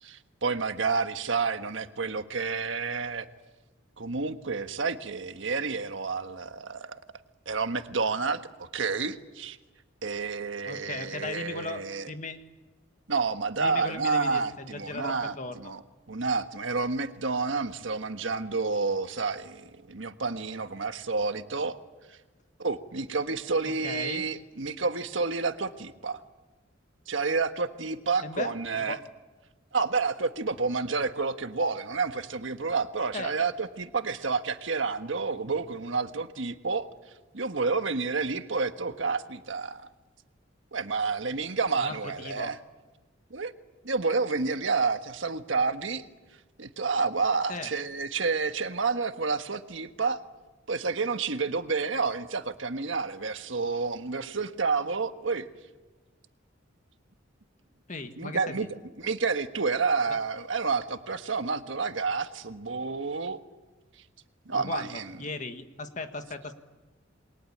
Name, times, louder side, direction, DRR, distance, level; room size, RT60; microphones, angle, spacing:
voice 1, 0.0-3.3 4.0-7.0 7.4-9.6 10.0-12.1 13.1-15.8 16.1-21.8 22.1-22.2 22.6-26.2 27.1-29.0 29.7-36.9 37.3-39.9 40.7-42.6 43.3-43.5 43.8-46.0 46.6-50.2 50.7-55.5 58.2-63.4 64.4-65.3, right 4 dB, 75° right, 8 dB, 1.5 m, -29 dB
voice 2, 10.7-12.4 13.6-15.7 23.6-24.2 28.2-29.0 33.1-33.3 41.8-42.5 47.5-47.7 57.9-58.7 64.5-66.6, left 3 dB, 40° left, 7 dB, 1.8 m, -37 dB
28.0 x 22.5 x 8.8 m, 1.2 s
head